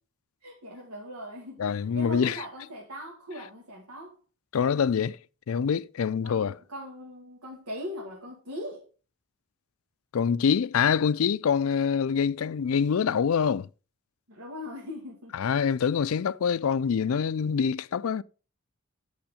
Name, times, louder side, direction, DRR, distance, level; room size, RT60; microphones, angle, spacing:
voice 1, 0.4-4.2 6.2-8.9 14.3-15.3, left 1 dB, 90° right, 2.1 m, -40 dB
voice 2, 1.6-2.4 4.5-5.2 5.5-6.6 10.1-13.7 15.3-18.2, left 6 dB, 70° left, 0.4 m, -25 dB
8.8 x 6.4 x 5.0 m
head